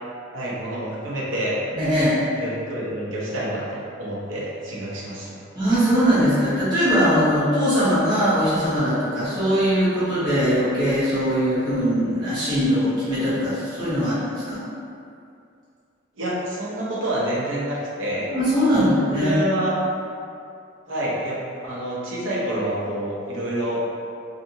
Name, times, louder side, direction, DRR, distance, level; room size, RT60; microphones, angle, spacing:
voice 1, 0.3-1.6 2.4-5.4 16.2-18.3 18.7-18.9 19.2-19.8 20.9-23.8, right 1 dB, 80° right, -5 dB, 0.6 m, -28 dB
voice 2, 1.7-2.2 5.5-14.6 18.3-19.4, equal, 20° right, -14 dB, 1.1 m, -21 dB
2.7 x 2.5 x 2.6 m, 2.4 s
head